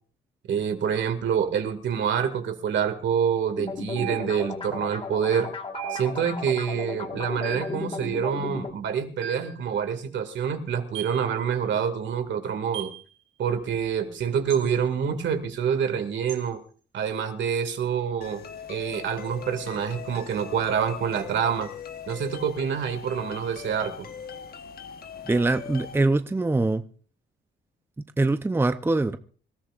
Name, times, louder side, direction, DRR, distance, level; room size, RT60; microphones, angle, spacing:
voice 1, 0.5-5.5 5.9-12.9 13.4-16.6 16.9-18.4 18.7-21.7 22.1-24.1, right 7 dB, 65° right, 8 dB, 2.2 m, -27 dB
sound 1, 3.6-8.7, left 4 dB, 25° left, 1.7 m, -35 dB
sound 2, 4.0-4.6 5.7-6.4 7.4-7.8 9.2-9.6 10.9-11.2 12.7-13.0 14.5-14.7 16.3-16.5, right 11 dB, 90° right, 1.3 m, -37 dB
sound 3, 18.2-26.0, left 7 dB, 50° left, 1.3 m, -40 dB
voice 2, 25.3-26.8 28.2-29.2, right 2 dB, 10° right, 10 dB, 0.7 m, -23 dB
26.5 x 13.5 x 2.5 m, 0.41 s
cardioid pair, 90°, 20 cm